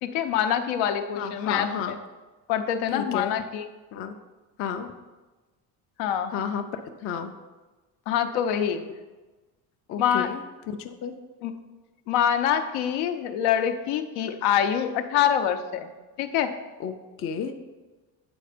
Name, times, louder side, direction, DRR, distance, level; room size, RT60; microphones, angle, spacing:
voice 1, 0.0-2.0 2.5-3.6 6.0-6.3 8.1-8.8 10.0-10.3 11.4-11.5 12.1-15.9 16.2-16.5, left 9 dB, 80° left, 8 dB, 0.7 m, -25 dB
voice 2, 1.2-2.0 2.9-3.4 3.9-4.1 4.6-4.9 6.3-6.6 7.0-7.3 9.9-10.4 10.8-11.1 16.8-17.6, left 7 dB, 35° left, 6 dB, 0.4 m, -31 dB
7.9 x 4.3 x 5.0 m, 1.2 s
cardioid pair, 155°, 40 cm